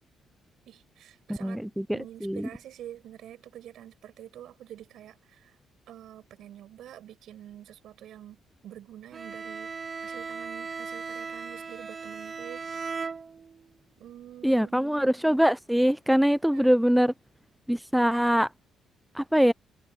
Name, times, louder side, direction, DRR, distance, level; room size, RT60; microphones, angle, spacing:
voice 1, 0.7-5.6 5.9-9.7 10.0-12.9 14.0-14.9 16.4-16.7, right 11 dB, 75° right, 6.0 m, -47 dB
voice 2, 1.4-2.5 14.4-17.1 17.7-18.5 19.1-19.5, equal, 5° right, 0.5 m, -23 dB
Bowed string instrument, 9.1-13.7, right 5 dB, 35° right, 1.8 m, -37 dB
cardioid pair, 90°, 0 cm